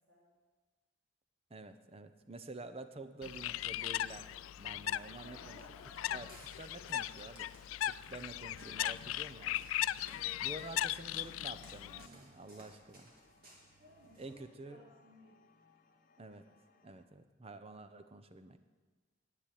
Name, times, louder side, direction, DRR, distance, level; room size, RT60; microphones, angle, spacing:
voice 1, 1.5-4.3 4.6-5.6 6.1-6.3 6.6-9.7 10.4-13.1 14.2-14.8 16.2-16.4 16.8-18.6, right 2 dB, 30° right, 9 dB, 0.7 m, -49 dB
Bird, 3.2-12.1, left 13 dB, 90° left, 0.3 m, -38 dB
voice 2, 4.9-6.1 10.1-10.4 13.8-14.4 14.6-15.4, left 1 dB, 65° right, -9 dB, 3.6 m, -59 dB
Walk footsteps, 5.8-14.4, right 1 dB, 50° right, 3.4 m, -61 dB
sound 1, 9.2-17.1, left 4 dB, 45° left, 0.9 m, -69 dB
10.5 x 8.4 x 9.3 m, 1.4 s
head